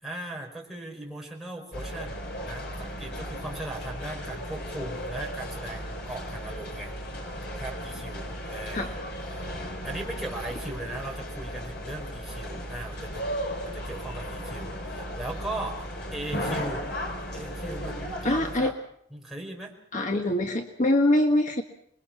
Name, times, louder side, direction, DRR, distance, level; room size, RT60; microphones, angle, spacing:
voice 1, 0.0-6.9 7.4-9.0 9.3-9.5 9.8-16.8 17.3-18.7 19.1-19.7, right 1 dB, ahead, -2 dB, 4.7 m, -38 dB
sound 1, 1.7-18.6, equal, 55° left, 4.5 m, -35 dB
voice 2, 18.2-18.7 19.9-21.6, left 1 dB, 40° left, 3 dB, 1.6 m, -24 dB
27.0 x 22.0 x 5.9 m, 0.70 s
head